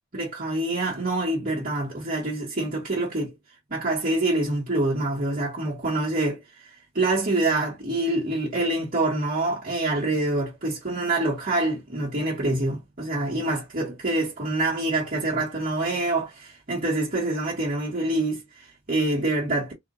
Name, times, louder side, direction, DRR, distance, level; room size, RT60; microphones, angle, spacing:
voice 1, 0.1-3.3 3.7-19.7, right 2 dB, 45° right, 1.6 m, -26 dB
4.2 x 2.7 x 2.6 m
head